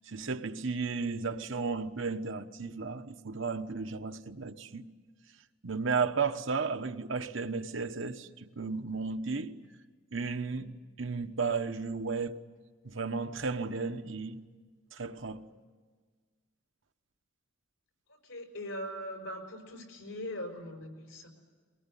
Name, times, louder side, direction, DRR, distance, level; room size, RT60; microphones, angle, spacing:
voice 1, 0.1-4.9 5.6-9.6 10.1-12.4 12.8-14.5 14.9-15.5, right 4 dB, 65° right, 1.1 m, -34 dB
voice 2, 18.2-21.3, equal, 85° left, 5.4 m, -40 dB
23.5 x 19.5 x 10.0 m
head